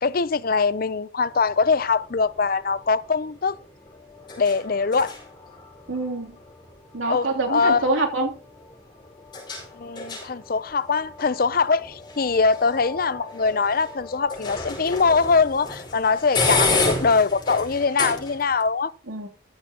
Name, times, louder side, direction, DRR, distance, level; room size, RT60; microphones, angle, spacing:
voice 1, 0.0-3.6 4.4-5.1 7.1-7.9 9.7-18.9, left 4 dB, 45° left, 0.5 m, -22 dB
sound 1, 1.2-18.6, left 3 dB, 20° left, 5.0 m, -32 dB
voice 2, 5.9-6.4 6.9-8.4 19.1-19.3, right 2 dB, 80° right, 3.1 m, -25 dB
14.5 x 12.5 x 2.9 m
head